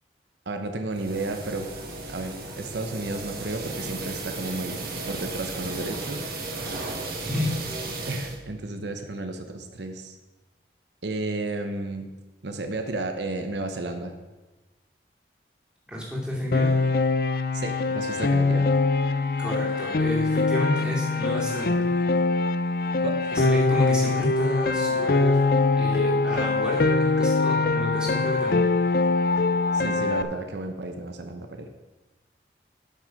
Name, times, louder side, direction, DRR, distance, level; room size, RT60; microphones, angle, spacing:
voice 1, 0.5-1.7 2.1-4.8 5.1-6.3 8.1-10.2 11.0-12.1 12.4-14.1 17.5-18.7 23.0-23.3 29.7-31.7, right 2 dB, 75° right, 6 dB, 0.9 m, -32 dB
sound 1, 0.9-8.4, right 2 dB, 55° right, 1.6 m, -35 dB
voice 2, 7.2-7.6 15.9-16.7 19.4-21.9 23.3-25.4 25.8-28.7, left 1 dB, 5° right, -5 dB, 2.5 m, -30 dB
Piano, 16.5-30.2, left 3 dB, 55° left, 0.5 m, -23 dB
12.5 x 6.3 x 5.2 m, 1.2 s
head